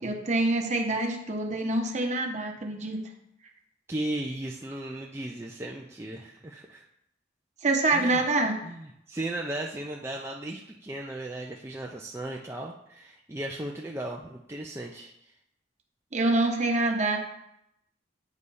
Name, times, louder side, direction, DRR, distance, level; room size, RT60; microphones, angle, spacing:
voice 1, 0.0-3.0 7.6-8.5 16.1-17.2, right 2 dB, 40° right, 3 dB, 0.9 m, -26 dB
voice 2, 3.9-6.8 7.9-8.2 8.6-15.3, right 1 dB, 15° right, -1 dB, 0.4 m, -36 dB
8.2 x 3.2 x 5.4 m, 0.79 s
head